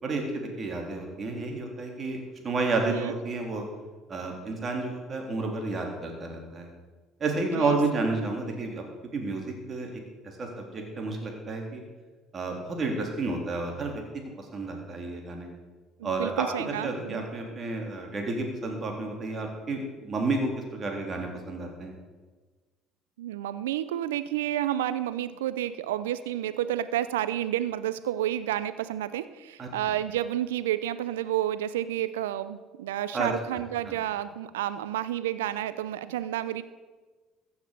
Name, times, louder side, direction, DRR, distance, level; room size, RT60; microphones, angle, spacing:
voice 1, 0.0-3.6 4.1-6.7 7.2-8.8 9.1-10.0 10.4-11.8 12.3-14.0 14.4-15.5 16.0-21.9 29.6-29.7 33.1-33.6 33.9-34.0, right 3 dB, 40° right, 2 dB, 3.5 m, -31 dB
voice 2, 16.0-17.2 23.2-36.6, right 12 dB, 80° right, 14 dB, 0.5 m, -30 dB
14.5 x 7.3 x 6.8 m, 1.3 s
hypercardioid pair, 60°, 0 cm